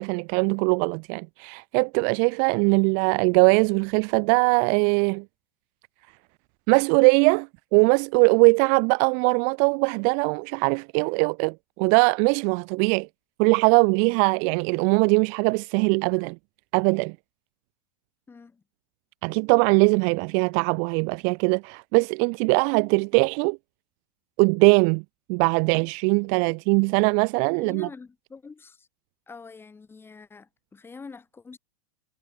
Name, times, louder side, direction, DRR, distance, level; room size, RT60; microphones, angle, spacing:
voice 1, 0.0-5.2 6.7-13.1 13.4-16.4 16.7-17.2 19.2-23.6 24.4-25.0 25.3-27.9, right 40 dB or more, 45° right, 0.4 m, -21 dB
voice 2, 18.3-18.6 26.5-26.6 27.6-28.9 29.3-31.6, left 4 dB, 15° left, 5.5 m, -45 dB
supercardioid pair, 140°, 17 cm